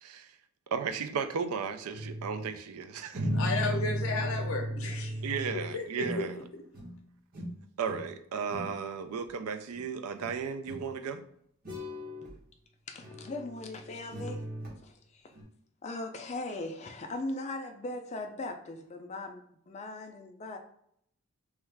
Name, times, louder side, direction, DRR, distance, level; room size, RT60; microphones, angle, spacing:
voice 1, 0.7-3.3 3.5-3.7 5.2-6.4 7.8-11.2, right 6 dB, 80° right, 9 dB, 0.4 m, -35 dB
sound 1, 1.9-2.5 3.1-6.5 6.7-7.0 7.3-8.1 8.4-8.8 9.7-9.8 10.2-10.3 10.6-10.9 11.6-12.4 13.0-14.7 15.3-15.4, equal, 40° right, 1.0 m, -36 dB
voice 2, 3.3-5.1 5.7-6.2 6.5-6.6, left 3 dB, 65° left, 2 dB, 0.7 m, -33 dB
voice 3, 12.9-14.4 14.8-15.3 15.8-20.6, left 2 dB, 30° left, 4 dB, 0.4 m, -39 dB
3.1 x 2.3 x 3.2 m, 0.69 s
head